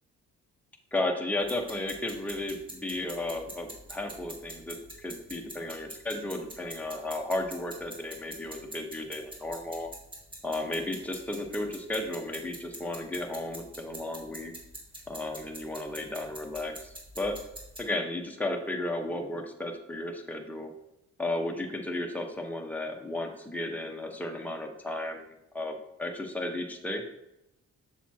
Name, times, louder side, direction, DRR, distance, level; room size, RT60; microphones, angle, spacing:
voice 1, 0.9-9.9 10.4-14.5 15.1-17.4 17.8-20.7 21.2-25.3 25.5-27.0, left 1 dB, 5° left, 2 dB, 1.1 m, -34 dB
sound 1, 1.4-17.8, right 1 dB, 15° right, 2.1 m, -46 dB
7.3 x 7.1 x 2.9 m, 0.86 s
cardioid pair, 90°, 30 cm